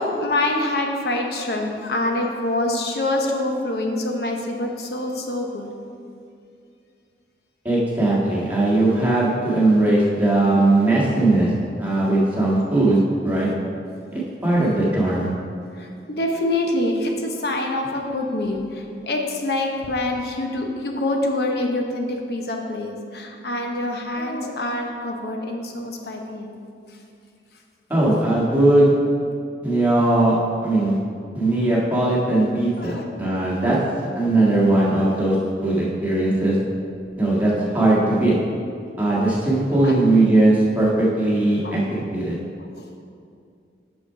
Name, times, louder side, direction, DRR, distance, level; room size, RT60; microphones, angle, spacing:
voice 1, 0.0-5.7 15.7-26.6 32.8-33.1 39.8-39.9 41.6-41.8 42.6-42.8, left 1 dB, 65° left, 2 dB, 0.9 m, -25 dB
voice 2, 7.6-11.5 11.8-13.5 14.1-15.3 27.9-28.9 29.6-30.4 30.6-31.0 31.3-33.8 34.1-35.3 35.6-36.6 37.2-38.3 39.0-41.8 42.1-42.4, right 2 dB, 10° right, -7 dB, 1.7 m, -19 dB
6.4 x 5.7 x 5.7 m, 2.4 s
head